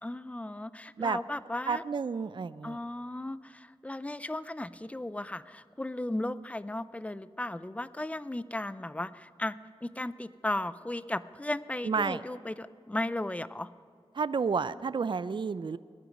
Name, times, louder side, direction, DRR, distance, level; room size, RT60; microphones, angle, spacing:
voice 1, 0.0-1.8 2.6-13.7, left 1 dB, 15° left, 16 dB, 0.5 m, -36 dB
voice 2, 1.7-2.8 11.8-12.2 14.1-15.8, right 5 dB, 50° right, 16 dB, 0.4 m, -30 dB
18.5 x 12.0 x 5.3 m, 2.2 s
wide cardioid pair, 70°, 10 cm